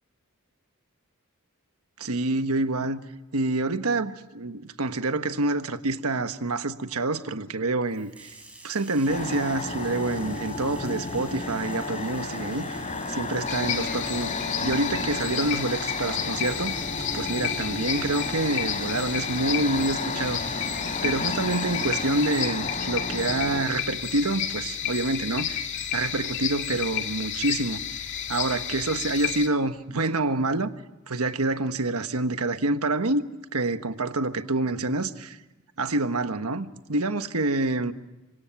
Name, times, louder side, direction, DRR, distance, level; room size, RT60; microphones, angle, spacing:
voice 1, 2.0-3.0 3.3-8.3 8.6-12.8 13.1-16.7 17.1-20.6 21.0-25.6 25.9-27.8 28.3-30.7 31.1-33.2 33.5-35.4 35.8-37.9, right 2 dB, 80° right, 1.3 m, -27 dB
Bathtub (filling or washing), 7.8-22.5, right 2 dB, 5° right, 6.6 m, -48 dB
sound 1, 9.1-23.6, left 3 dB, 35° left, 3.3 m, -33 dB
sound 2, 13.5-29.5, left 9 dB, 55° left, 2.1 m, -31 dB
28.0 x 25.0 x 6.0 m
head